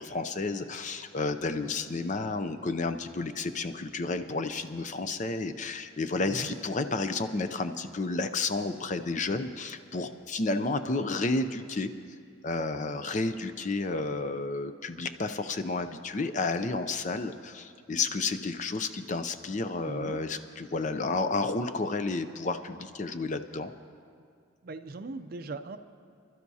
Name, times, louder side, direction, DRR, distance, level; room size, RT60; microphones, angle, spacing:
voice 1, 0.0-11.9 12.4-23.7, left 3 dB, 35° left, 10 dB, 0.5 m, -31 dB
voice 2, 19.8-20.2 24.6-25.8, right 3 dB, 45° right, 10 dB, 0.5 m, -39 dB
27.0 x 12.5 x 2.8 m, 2.2 s
head